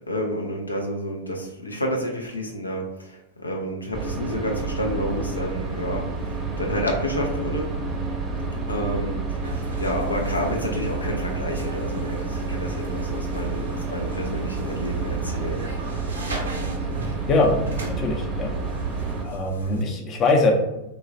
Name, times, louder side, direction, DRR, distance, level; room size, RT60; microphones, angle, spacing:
voice 1, 0.1-7.8 8.7-9.4 9.8-15.9, equal, 80° left, 1 dB, 0.4 m, -30 dB
sound 1, 3.9-19.2, right 3 dB, 20° right, 0.6 m, -29 dB
sound 2, 9.4-19.8, right 2 dB, 70° right, 0.5 m, -38 dB
voice 2, 17.3-18.5 19.2-20.5, left 3 dB, 30° left, 1 dB, 0.5 m, -22 dB
3.1 x 2.2 x 2.6 m, 0.89 s
figure-of-eight pair, 90°, 0 cm